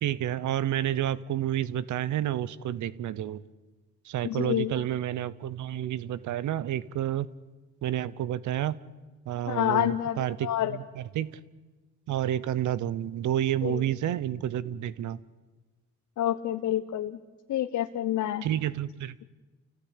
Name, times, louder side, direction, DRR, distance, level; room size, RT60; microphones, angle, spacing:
voice 1, 0.0-3.4 4.0-7.3 7.8-8.8 9.3-11.4 12.1-15.2 18.4-19.2, right 11 dB, 75° right, 19 dB, 0.9 m, -30 dB
voice 2, 4.2-4.8 9.5-10.8 13.6-13.8 16.2-17.2 17.5-18.5, left 12 dB, 70° left, 7 dB, 1.1 m, -28 dB
29.0 x 16.5 x 9.9 m, 1.3 s
cardioid pair, 90°, 30 cm